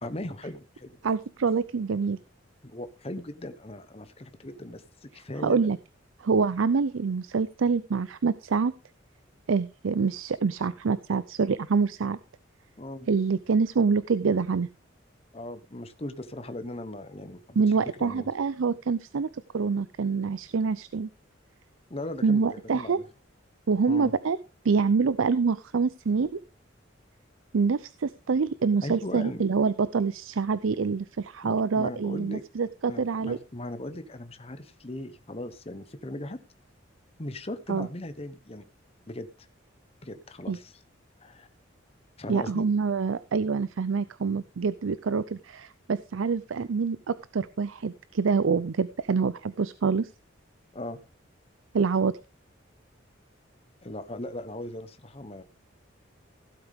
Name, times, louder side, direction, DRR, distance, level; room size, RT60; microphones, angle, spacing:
voice 1, 0.0-1.0 2.6-5.6 12.8-13.1 15.3-17.6 18.0-18.3 21.9-23.0 23.9-24.1 28.8-29.4 31.4-32.4 32.9-36.4 37.2-38.7 39.1-39.3 40.0-40.7 41.2-41.5 42.2-42.7 50.7-51.0 53.8-55.4, left 1 dB, 30° left, 10 dB, 1.0 m, -38 dB
voice 2, 1.0-2.2 5.4-5.8 6.2-8.7 9.5-12.2 13.1-14.7 17.6-19.3 19.5-21.1 22.2-23.0 23.7-24.4 24.6-26.4 27.5-33.4 37.7-37.9 40.5-40.6 42.3-50.1 51.7-52.1, right 5 dB, 90° right, 16 dB, 0.5 m, -26 dB
16.0 x 8.0 x 3.6 m, 0.30 s
head